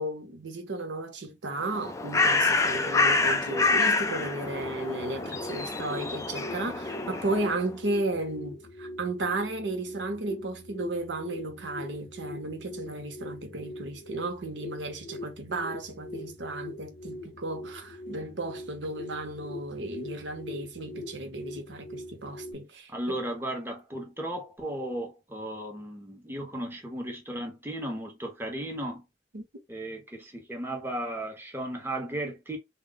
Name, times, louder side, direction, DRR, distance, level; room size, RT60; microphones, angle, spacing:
voice 1, 0.0-23.2 29.3-29.4, right 2 dB, 80° right, 0.8 m, -34 dB
Bird, 1.6-7.7, left 3 dB, 15° left, 0.3 m, -27 dB
sound 1, 4.2-22.5, left 1 dB, 70° left, 0.7 m, -42 dB
voice 2, 22.9-29.0 29.7-32.6, right 1 dB, 15° right, 0.9 m, -35 dB
2.3 x 2.0 x 3.8 m
head